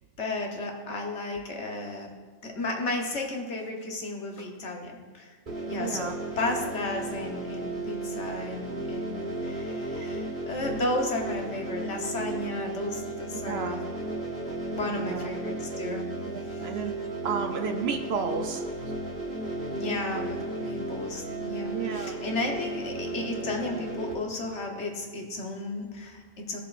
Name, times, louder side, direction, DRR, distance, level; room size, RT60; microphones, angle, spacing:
voice 1, 0.2-2.1 2.4-5.3 5.7-13.8 14.4-16.1 16.4-16.7 19.7-26.6, left 2 dB, 65° left, 1 dB, 1.4 m, -33 dB
sound 1, 5.5-24.1, right 2 dB, 40° right, 1.9 m, -34 dB
voice 2, 5.7-6.1 10.0-10.1 13.3-13.8 14.9-15.3 16.3-16.9 17.2-18.6 21.7-22.2, right 6 dB, 65° right, 6 dB, 0.8 m, -32 dB
16.0 x 6.7 x 2.5 m, 1.4 s
omnidirectional pair, 1.3 m